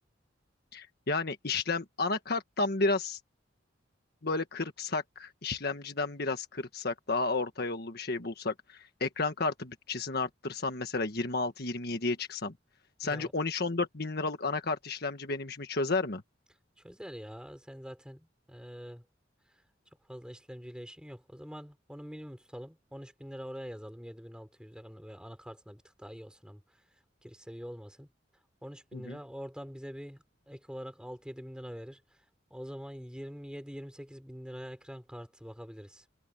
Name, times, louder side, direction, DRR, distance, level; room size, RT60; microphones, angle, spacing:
voice 1, 0.7-3.2 4.2-12.5 13.0-16.2 28.9-29.2, left 3 dB, 55° left, 1.6 m, -32 dB
voice 2, 16.8-19.0 20.1-26.8 27.2-28.1 28.6-32.0 32.5-36.0, equal, 5° right, 6.4 m, -45 dB
head